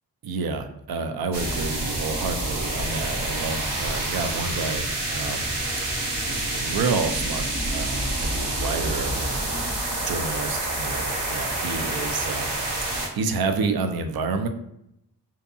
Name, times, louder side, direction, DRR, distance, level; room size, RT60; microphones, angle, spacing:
voice 1, 0.2-5.5 5.8-6.0 6.3-12.5 12.8-14.5, right 4 dB, 55° right, 7 dB, 0.5 m, -29 dB
sound 1, 1.3-13.1, right 1 dB, 80° right, 1.0 m, -28 dB
2.7 x 2.2 x 2.5 m, 0.77 s
cardioid pair, 45°, 43 cm